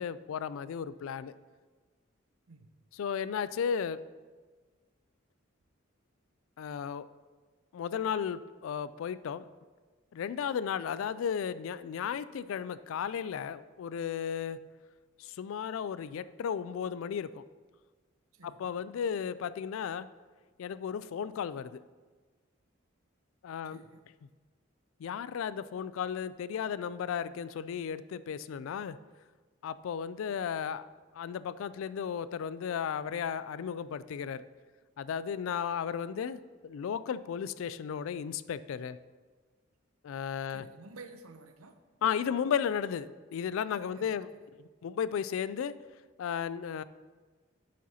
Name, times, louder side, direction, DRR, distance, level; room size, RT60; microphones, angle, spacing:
voice 1, 0.0-1.3 3.0-4.0 6.6-7.1 7.7-9.5 10.1-14.6 15.2-17.4 18.4-20.1 20.6-21.8 23.4-23.8 25.0-29.0 29.6-30.9 31.2-34.4 35.0-39.0 40.0-40.7 42.0-44.3 44.8-45.7 46.2-46.8, left 7 dB, 70° left, 16 dB, 0.3 m, -34 dB
voice 2, 18.3-18.8 23.6-24.0 40.5-41.8 43.9-44.1, right 3 dB, 85° right, 8 dB, 0.7 m, -51 dB
10.0 x 7.4 x 2.8 m, 1.4 s
head